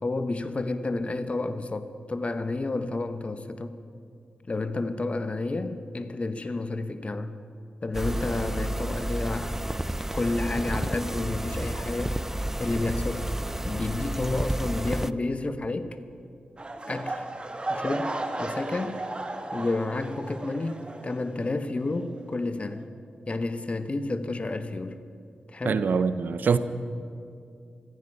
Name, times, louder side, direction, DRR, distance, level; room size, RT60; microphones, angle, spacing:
voice 1, 0.0-3.8 4.5-7.3 7.8-9.6 10.1-12.2 12.6-13.3 13.6-16.0 16.9-17.3 17.7-19.0 19.5-22.9 23.3-25.0 25.5-25.8, left 2 dB, 40° left, 0.9 m, -30 dB
sound 1, 7.9-15.1, right 1 dB, 10° right, 0.5 m, -31 dB
sound 2, 16.6-21.6 21.9-22.2 22.7-22.8, right 2 dB, 30° right, 1.5 m, -35 dB
voice 2, 25.6-26.6, right 5 dB, 70° right, 0.6 m, -24 dB
15.0 x 14.5 x 5.5 m
cardioid pair, 45°, 3 cm